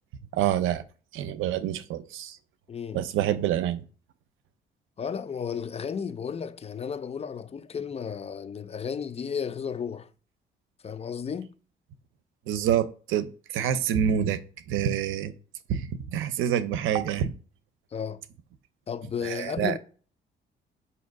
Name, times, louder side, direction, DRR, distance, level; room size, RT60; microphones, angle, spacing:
voice 1, 0.3-0.8 1.1-2.4 2.9-3.8 12.5-14.4 14.7-15.3 15.7-17.3 19.2-19.8, right 10 dB, 85° right, 0.6 m, -27 dB
voice 2, 2.7-3.0 5.0-10.1 10.8-11.5 17.9-18.2 18.9-19.8, left 7 dB, 30° left, 0.5 m, -33 dB
7.1 x 2.8 x 5.2 m
cardioid pair, 90°, 20 cm